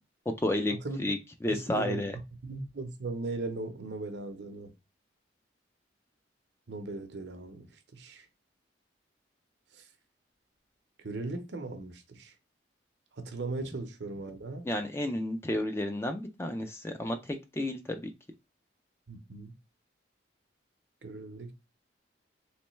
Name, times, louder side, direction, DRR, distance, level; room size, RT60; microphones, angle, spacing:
voice 1, 0.4-0.7 1.0-2.1 14.6-18.1, left 1 dB, 15° left, 0.3 m, -31 dB
voice 2, 1.5-2.1 2.4-4.7 6.7-8.3 11.0-12.3 13.2-14.6 19.1-19.5 21.0-21.5, right 3 dB, 70° right, 0.7 m, -38 dB
3.2 x 3.0 x 3.1 m
head